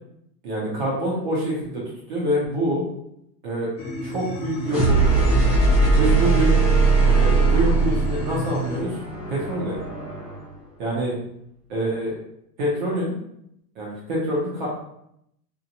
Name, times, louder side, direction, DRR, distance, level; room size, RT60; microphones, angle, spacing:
voice 1, 0.4-1.8 2.1-2.8 3.4-3.7 4.0-6.6 7.1-9.0 9.3-9.8 10.8-11.2 11.7-12.1 12.6-13.1 13.8-14.7, equal, 35° right, -5 dB, 0.4 m, -26 dB
sound 1, 3.8-8.8, equal, 50° left, 0.9 m, -31 dB
sound 2, 4.6-10.5, right 3 dB, ahead, 0.8 m, -20 dB
2.8 x 2.1 x 2.5 m, 0.76 s
supercardioid pair, 165°, 47 cm